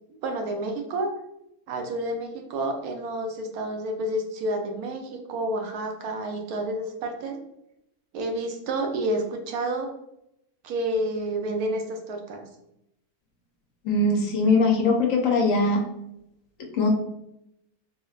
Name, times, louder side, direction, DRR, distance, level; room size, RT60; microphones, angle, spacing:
voice 1, 0.2-1.1 1.7-7.4 8.1-9.9 10.6-12.4, right 1 dB, 80° right, 4 dB, 1.1 m, -29 dB
voice 2, 13.8-15.8 16.6-16.9, left 3 dB, 65° left, 1 dB, 0.9 m, -21 dB
3.2 x 2.8 x 2.3 m, 0.82 s
omnidirectional pair, 1.6 m